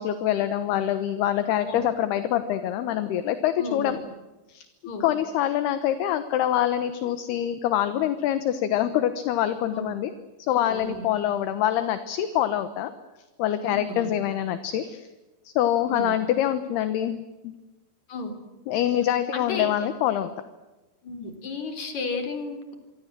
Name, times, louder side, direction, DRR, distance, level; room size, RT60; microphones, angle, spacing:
voice 1, 0.0-4.0 4.5-4.7 5.0-10.1 10.5-12.9 13.4-15.1 15.4-17.5 18.7-20.3, left 11 dB, 70° left, 11 dB, 2.9 m, -25 dB
voice 2, 3.6-4.0 4.8-5.1 9.7-9.9 10.5-11.0 13.6-14.1 15.9-16.1 18.1-18.3 19.3-19.7 21.0-22.8, left 3 dB, 40° left, 7 dB, 4.8 m, -33 dB
27.0 x 24.0 x 7.6 m, 1.1 s
omnidirectional pair, 5.4 m